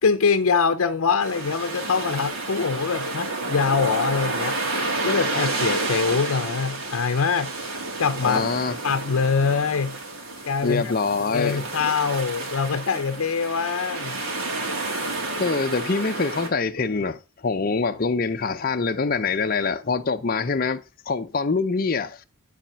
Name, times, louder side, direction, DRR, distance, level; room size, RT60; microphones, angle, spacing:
voice 1, 0.0-7.5 8.0-8.5 8.8-10.0 10.4-10.9 11.3-14.2, left 5 dB, 85° left, 0.6 m, -24 dB
sound 1, 1.2-16.5, right 2 dB, 70° right, 2.6 m, -30 dB
voice 2, 8.2-8.8 10.6-11.6 15.4-22.2, left 4 dB, 45° left, 0.6 m, -25 dB
12.0 x 4.2 x 5.7 m
head